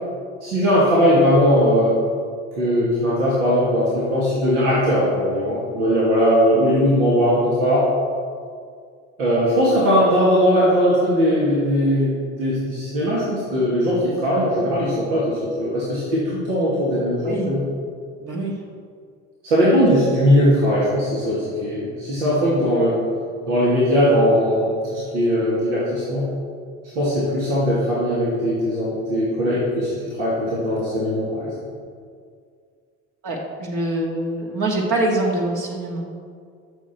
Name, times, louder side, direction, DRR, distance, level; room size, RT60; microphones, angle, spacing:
voice 1, 0.4-2.0 2.6-7.9 9.2-17.6 19.4-23.0 23.5-26.3 26.9-31.5, equal, 85° right, -8 dB, 2.6 m, -19 dB
voice 2, 18.2-18.5 19.6-19.7 33.2-36.0, right 2 dB, 60° right, -2 dB, 2.2 m, -24 dB
13.0 x 6.5 x 4.5 m, 2.2 s
hypercardioid pair, 70°, 35 cm